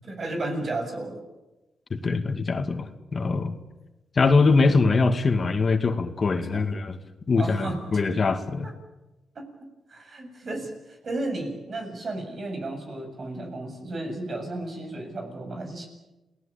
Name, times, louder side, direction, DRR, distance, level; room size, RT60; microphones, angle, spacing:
voice 1, 0.0-1.2 6.5-6.6 7.4-8.0 8.6-8.7 9.4-9.5 9.9-15.9, right 2 dB, 50° right, 5 dB, 7.3 m, -33 dB
voice 2, 1.9-3.5 4.1-7.0 7.3-8.7, left 4 dB, 45° left, 7 dB, 2.4 m, -23 dB
29.0 x 18.5 x 8.9 m, 1.0 s
cardioid pair, 80°, 0 cm